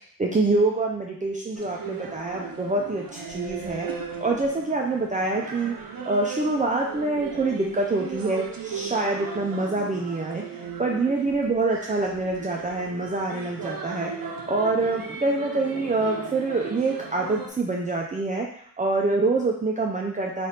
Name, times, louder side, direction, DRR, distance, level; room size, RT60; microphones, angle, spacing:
voice 1, 0.2-3.9 4.2-10.4 10.8-18.5 18.8-20.5, right 3 dB, 25° right, -1 dB, 0.4 m, -26 dB
sound 1, 1.6-17.5, right 5 dB, 80° right, 0.6 m, -37 dB
3.3 x 2.5 x 4.1 m, 0.64 s
wide cardioid pair, 60°, 34 cm